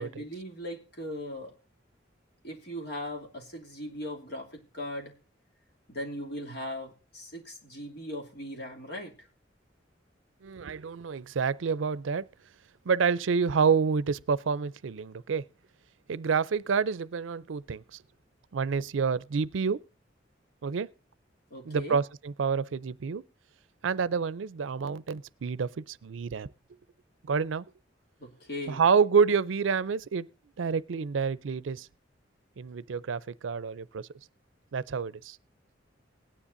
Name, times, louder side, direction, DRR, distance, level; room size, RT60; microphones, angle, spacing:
voice 1, 0.0-1.6 2.4-5.1 5.9-9.3 21.5-22.0 28.2-28.8, left 1 dB, 55° left, 2.7 m, -39 dB
voice 2, 10.4-12.2 12.9-15.4 16.1-17.8 18.5-19.8 20.6-20.9 21.7-23.2 23.8-26.5 27.2-27.6 28.7-30.3 30.6-31.9 32.6-34.1 34.7-35.4, right 5 dB, 90° right, 0.5 m, -28 dB
19.0 x 10.0 x 2.6 m
head